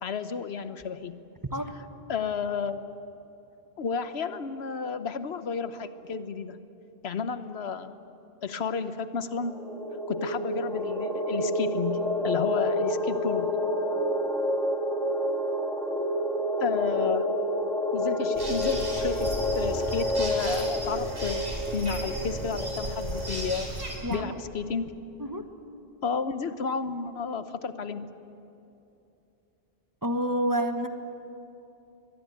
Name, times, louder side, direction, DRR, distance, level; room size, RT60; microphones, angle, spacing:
voice 1, 0.0-1.2 2.1-2.8 3.8-6.6 7.0-7.9 8.4-9.6 10.1-13.5 16.6-17.3 17.9-21.4 21.7-23.7 24.1-24.9 26.0-28.1, left 5 dB, 80° left, 11 dB, 1.2 m, -32 dB
sound 1, 9.4-23.7, left 1 dB, 5° left, 2.0 m, -29 dB
sound 2, 18.4-24.0, right 1 dB, 85° right, 4.7 m, -35 dB
voice 2, 24.0-24.3 25.2-25.5 30.0-30.9, equal, 20° right, 7 dB, 1.3 m, -28 dB
23.5 x 22.0 x 9.5 m, 2.8 s
omnidirectional pair, 1.1 m